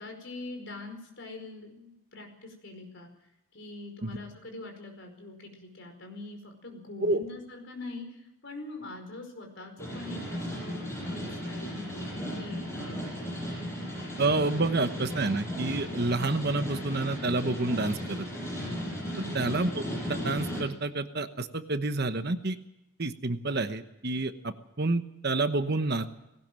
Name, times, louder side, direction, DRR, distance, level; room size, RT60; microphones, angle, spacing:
voice 1, 0.0-3.1 3.5-8.2 8.4-13.1 19.1-19.5, left 2 dB, 55° left, 4 dB, 5.1 m, -43 dB
sound 1, 9.8-20.6, equal, 10° left, 7.7 m, -35 dB
voice 2, 14.2-18.3 19.3-22.6 23.0-26.0, right 2 dB, 50° right, 9 dB, 1.1 m, -29 dB
19.5 x 18.0 x 7.6 m, 0.87 s
head